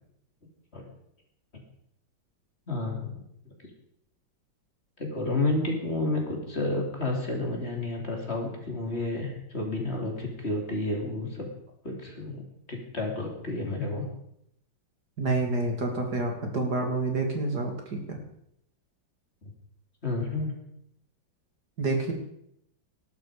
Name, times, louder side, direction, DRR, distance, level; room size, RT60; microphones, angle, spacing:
voice 1, 2.7-3.1 5.0-11.5 11.8-12.4 12.7-14.1 20.0-20.5, left 2 dB, 30° left, 0 dB, 3.5 m, -30 dB
voice 2, 15.2-18.2 21.8-22.1, right 2 dB, 55° right, 2 dB, 3.1 m, -28 dB
19.0 x 12.0 x 5.1 m, 0.74 s
omnidirectional pair, 2.1 m